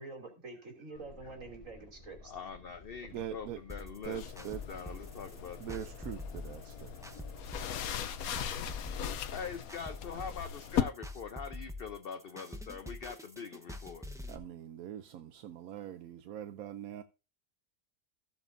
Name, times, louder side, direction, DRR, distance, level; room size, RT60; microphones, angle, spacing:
voice 1, 0.0-2.3, right 3 dB, 65° right, 3.3 m, -47 dB
sound 1, 0.9-8.5, left 2 dB, 15° left, 4.2 m, -55 dB
voice 2, 2.2-5.9 8.8-9.0 9.3-14.0, left 6 dB, 50° left, 0.8 m, -43 dB
voice 3, 3.1-3.6 4.0-4.6 5.6-7.0 14.3-17.0, right 11 dB, 80° right, 1.1 m, -42 dB
sound 2, 3.7-14.4, left 1 dB, 5° right, 0.8 m, -45 dB
sound 3, 4.0-10.8, left 8 dB, 85° left, 1.2 m, -38 dB
15.0 x 7.1 x 2.6 m
omnidirectional pair, 1.5 m